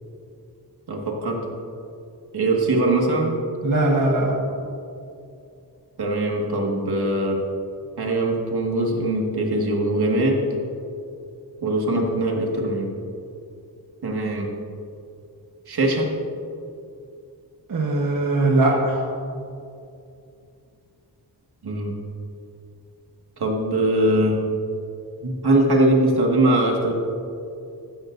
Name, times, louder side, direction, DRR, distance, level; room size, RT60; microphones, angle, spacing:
voice 1, 0.9-1.5 2.3-3.4 6.0-7.4 8.0-10.4 11.6-12.9 14.0-14.5 15.7-16.1 21.6-22.0 23.4-24.4 25.2-26.9, right 1 dB, 70° right, 0 dB, 1.9 m, -21 dB
voice 2, 3.6-4.3 17.7-19.0, right 2 dB, 55° right, -2 dB, 1.4 m, -20 dB
15.5 x 13.5 x 2.6 m, 2.5 s
wide cardioid pair, 140°, 39 cm